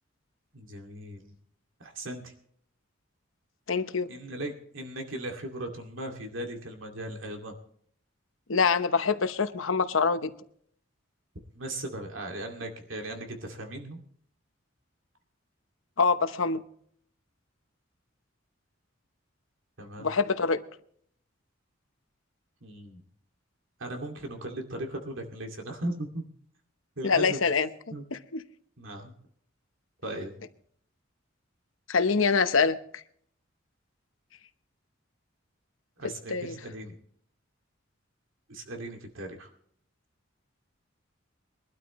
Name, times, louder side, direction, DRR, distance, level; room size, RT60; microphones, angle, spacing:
voice 1, 0.5-1.3 1.8-2.3 4.1-7.5 11.5-14.0 19.8-20.1 22.6-23.0 23.8-26.2 27.0-27.4 27.9-28.1 28.8-29.1 30.0-30.3 36.0-36.9 38.5-39.5, right 1 dB, 75° right, 3 dB, 2.4 m, -37 dB
voice 2, 3.7-4.1 8.5-10.3 16.0-16.6 20.0-20.6 27.0-27.7 28.3-28.4 31.9-32.8 36.3-36.6, left 5 dB, 85° left, 10 dB, 1.0 m, -25 dB
22.5 x 12.5 x 3.1 m, 0.63 s
head